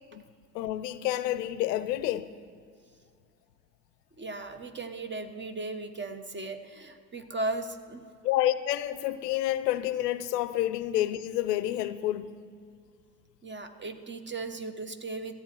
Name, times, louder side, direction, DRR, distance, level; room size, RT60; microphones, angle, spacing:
voice 1, 0.5-2.3 8.2-12.4, left 13 dB, 80° left, 0.6 m, -29 dB
voice 2, 4.2-8.1 13.4-15.3, right 2 dB, 25° right, 1.1 m, -36 dB
14.5 x 8.1 x 6.0 m
hypercardioid pair, 55°, 48 cm